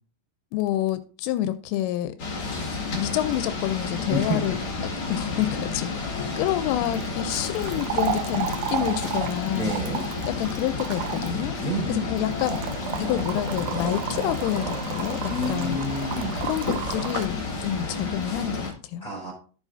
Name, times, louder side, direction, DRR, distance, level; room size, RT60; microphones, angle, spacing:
voice 1, 0.5-2.2 3.0-4.6 4.8-9.7 10.3-11.6 11.9-12.6 13.0-15.8 16.4-19.1, left 12 dB, 85° left, 11 dB, 3.1 m, -28 dB
sound 1, 2.2-18.7, left 3 dB, 50° left, 1.6 m, -31 dB
voice 2, 4.1-4.4 9.5-10.0 11.6-12.1 15.3-16.3 19.0-19.3, equal, ahead, -4 dB, 3.2 m, -29 dB
sound 2, 5.1-14.4, left 7 dB, 70° left, 2.8 m, -40 dB
sound 3, 6.9-17.3, right 11 dB, 80° right, 2.9 m, -33 dB
13.5 x 7.3 x 2.6 m, 0.38 s
omnidirectional pair, 5.7 m